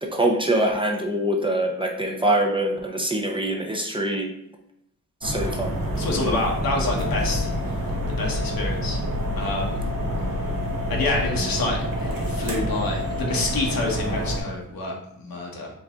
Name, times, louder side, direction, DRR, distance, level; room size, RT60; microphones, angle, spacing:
voice 1, 0.0-4.3 5.2-5.7, right 1 dB, 15° right, 1 dB, 0.6 m, -24 dB
sound 1, 5.2-14.4, equal, 70° right, 1.0 m, -27 dB
voice 2, 6.0-7.5 8.2-9.0 9.4-9.8 10.9-15.7, left 2 dB, 85° left, 0 dB, 1.2 m, -27 dB
4.0 x 3.5 x 3.6 m, 0.76 s
wide cardioid pair, 135°, 34 cm